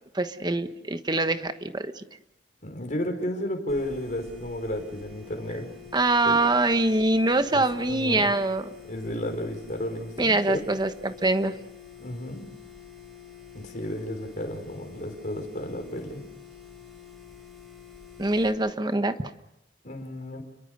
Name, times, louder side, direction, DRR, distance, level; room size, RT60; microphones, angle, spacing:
voice 1, 0.1-2.0 5.9-8.7 10.2-11.6 18.2-19.3, right 2 dB, 25° right, 9 dB, 1.2 m, -24 dB
voice 2, 2.6-5.7 6.2-6.4 7.5-8.3 8.9-10.6 12.0-12.4 13.5-16.3 19.8-20.4, left 1 dB, 50° left, 4 dB, 5.1 m, -33 dB
sound 1, 3.7-18.5, left 7 dB, ahead, 6.2 m, -47 dB
29.5 x 22.0 x 6.7 m, 0.91 s
head